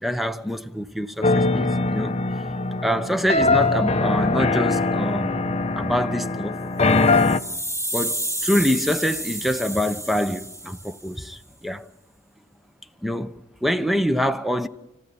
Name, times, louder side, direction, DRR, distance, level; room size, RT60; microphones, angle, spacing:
voice 1, 0.0-2.2 2.8-5.4 5.8-6.6 7.9-11.8 13.0-13.3 13.6-14.7, equal, ahead, 0.9 m, -25 dB
sound 1, 1.2-7.4, left 3 dB, 35° left, 0.8 m, -22 dB
sound 2, 6.9-11.1, right 1 dB, 15° right, 4.1 m, -30 dB
30.0 x 15.5 x 8.7 m
head